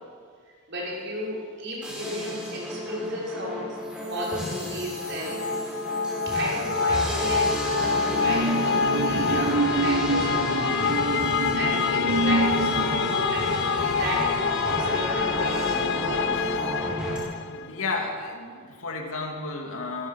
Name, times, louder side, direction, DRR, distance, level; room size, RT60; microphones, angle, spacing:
voice 1, 0.7-3.8 4.1-5.4 6.3-10.6 11.5-16.5, equal, 55° right, -4 dB, 5.9 m, -33 dB
sound 1, 1.8-17.2, equal, 5° right, 5.4 m, -31 dB
sound 2, 4.9-17.7, left 6 dB, 55° left, 0.4 m, -27 dB
sound 3, 7.3-16.3 16.6-16.9, right 3 dB, 85° right, 1.2 m, -29 dB
voice 2, 17.5-20.1, left 3 dB, 75° left, 2 dB, 2.8 m, -32 dB
27.0 x 15.0 x 6.7 m, 2.1 s
head